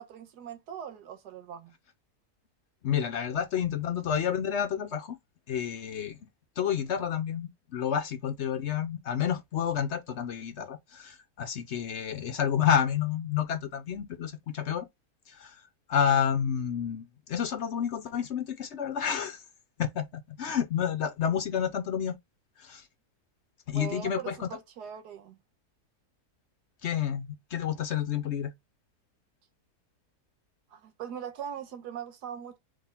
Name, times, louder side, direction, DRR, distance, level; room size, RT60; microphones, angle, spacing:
voice 1, 0.0-1.7 23.7-25.4 30.7-32.6, right 8 dB, 90° right, 1.5 m, -40 dB
voice 2, 2.8-5.2 5.5-6.2 6.6-14.9 15.3-15.6 15.9-19.4 19.8-22.2 22.6-22.9 23.7-24.5 26.8-28.5, left 8 dB, 60° left, 0.7 m, -30 dB
3.7 x 3.3 x 4.2 m
omnidirectional pair, 1.7 m